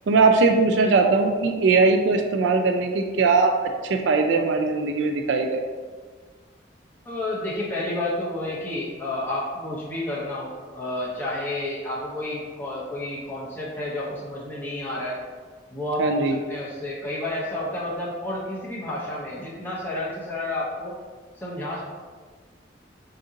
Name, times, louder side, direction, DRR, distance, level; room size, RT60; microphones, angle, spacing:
voice 1, 0.1-5.6 16.0-16.4, right 4 dB, 70° right, 4 dB, 0.3 m, -20 dB
voice 2, 7.0-15.2 15.7-21.0 21.3-21.8, left 1 dB, 10° left, -7 dB, 0.6 m, -30 dB
3.5 x 2.6 x 3.8 m, 1.5 s
head